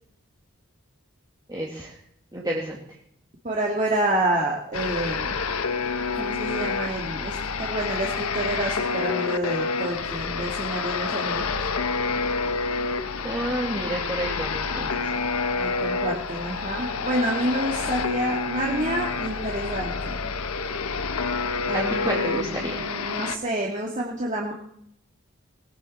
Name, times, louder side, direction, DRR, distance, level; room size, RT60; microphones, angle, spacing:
voice 1, 1.5-1.9 2.3-2.8 13.2-15.1 21.7-22.8, right 1 dB, 20° right, -2 dB, 2.3 m, -30 dB
voice 2, 3.4-5.4 6.1-7.3 7.6-11.5 15.5-20.2 21.7-24.5, right 1 dB, 35° right, -1 dB, 2.5 m, -28 dB
sound 1, 4.7-23.4, left 4 dB, 85° left, 1.2 m, -28 dB
19.5 x 17.0 x 4.4 m, 0.73 s
head